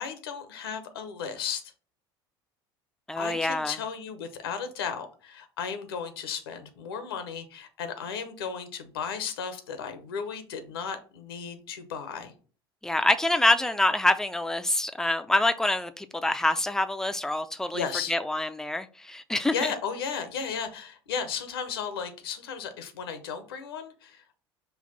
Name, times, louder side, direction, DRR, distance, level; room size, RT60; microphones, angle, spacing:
voice 1, 0.0-1.7 3.2-12.3 17.7-18.1 19.5-24.4, left 6 dB, 70° left, 0.8 m, -35 dB
voice 2, 3.1-3.8 12.8-19.5, left 1 dB, 5° left, 0.4 m, -26 dB
5.6 x 2.5 x 3.9 m
figure-of-eight pair, 65°, 13 cm